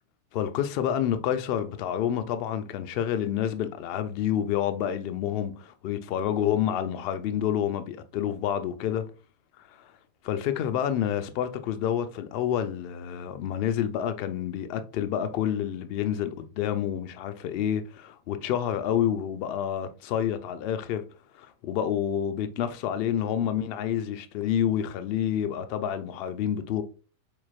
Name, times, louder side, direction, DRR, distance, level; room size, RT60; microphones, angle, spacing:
voice 1, 0.3-9.0 10.2-21.0 21.3-26.8, left 9 dB, 45° left, 0.4 m, -28 dB
4.1 x 3.0 x 2.4 m
figure-of-eight pair, 90°, 0 cm